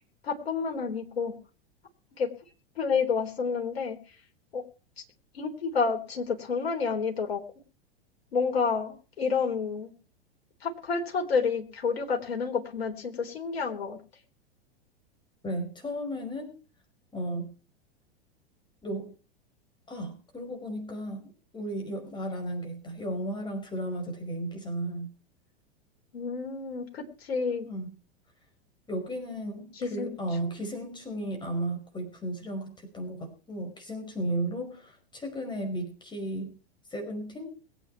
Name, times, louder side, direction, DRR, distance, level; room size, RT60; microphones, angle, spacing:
voice 1, 0.2-1.4 2.2-2.3 2.8-4.0 4.5-4.6 5.3-7.4 8.3-9.9 10.6-14.0 26.1-27.7 29.8-30.2, left 5 dB, 70° left, 3 dB, 3.9 m, -29 dB
voice 2, 15.4-16.6 17.1-17.5 18.8-19.1 19.9-25.1 27.6-27.9 28.9-36.6 36.9-37.5, right 1 dB, 15° left, 4 dB, 5.3 m, -34 dB
22.0 x 9.0 x 4.7 m, 0.36 s
figure-of-eight pair, 95°, 32 cm